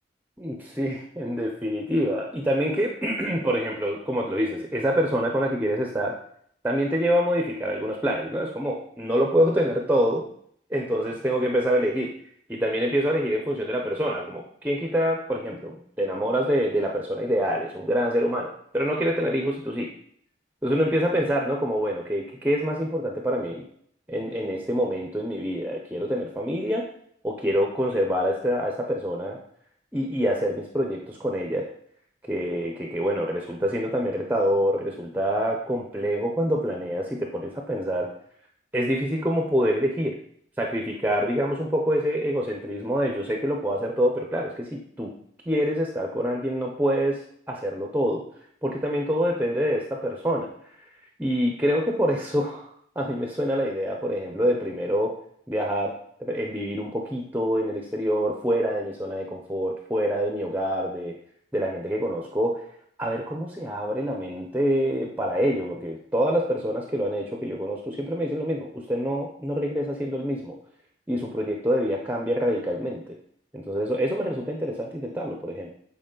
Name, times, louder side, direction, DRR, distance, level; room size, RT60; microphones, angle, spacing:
voice 1, 0.4-6.2 6.6-10.3 10.7-12.1 12.5-19.9 20.6-23.6 24.1-26.9 27.2-29.4 29.9-31.7 32.3-38.1 38.7-40.2 40.6-45.1 45.5-48.3 48.6-50.5 51.2-52.7 53.0-55.2 55.5-55.9 56.2-61.2 61.5-62.6 63.0-70.6 71.1-73.2 73.5-75.7, equal, 10° right, 1 dB, 0.6 m, -26 dB
7.8 x 4.2 x 3.8 m, 0.66 s
head